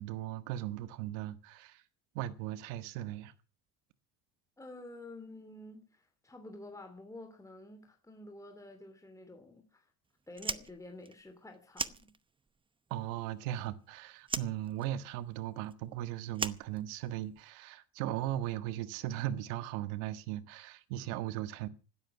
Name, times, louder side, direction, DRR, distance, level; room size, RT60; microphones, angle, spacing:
voice 1, 0.0-1.8 2.1-3.3 12.9-21.7, right 13 dB, 85° right, 1.6 m, -38 dB
voice 2, 4.6-9.9 10.3-12.1, left 2 dB, 10° left, 3.0 m, -50 dB
Fire, 10.3-12.6 12.9-13.9 14.2-17.4, right 4 dB, 15° right, 0.8 m, -39 dB
16.0 x 13.0 x 6.0 m
supercardioid pair, 105°, 39 cm